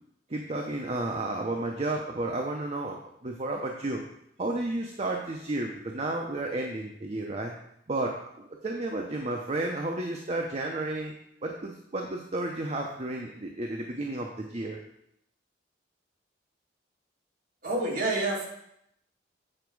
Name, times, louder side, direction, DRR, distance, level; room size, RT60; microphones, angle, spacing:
voice 1, 0.3-4.0 4.4-7.5 7.9-11.1 11.4-14.8, right 2 dB, 35° right, 1 dB, 0.7 m, -32 dB
voice 2, 17.6-18.5, right 2 dB, 55° right, -3 dB, 2.2 m, -28 dB
8.8 x 5.0 x 4.7 m, 0.77 s
head